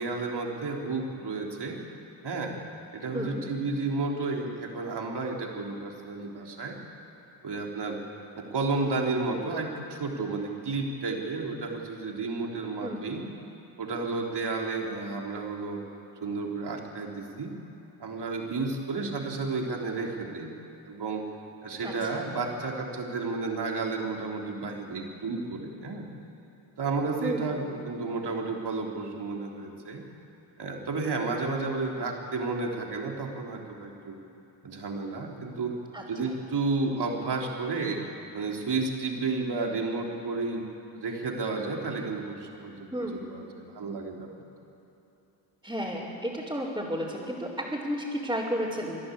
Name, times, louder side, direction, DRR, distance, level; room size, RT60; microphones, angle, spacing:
voice 1, 0.0-1.8 2.2-2.5 2.9-6.8 7.4-8.0 8.3-13.2 13.8-15.8 16.2-17.5 18.0-20.5 20.8-21.2 21.6-26.1 26.8-30.0 30.6-34.1 34.6-35.7 36.1-38.0 38.3-40.7 40.9-44.3, right 3 dB, 55° right, 0 dB, 3.6 m, -32 dB
voice 2, 3.1-3.4 12.8-13.1 21.8-22.2 27.2-27.6 35.9-36.3 42.9-43.2 45.6-49.0, equal, 5° right, -10 dB, 5.0 m, -33 dB
27.5 x 11.5 x 8.5 m, 3.0 s
supercardioid pair, 50°, 49 cm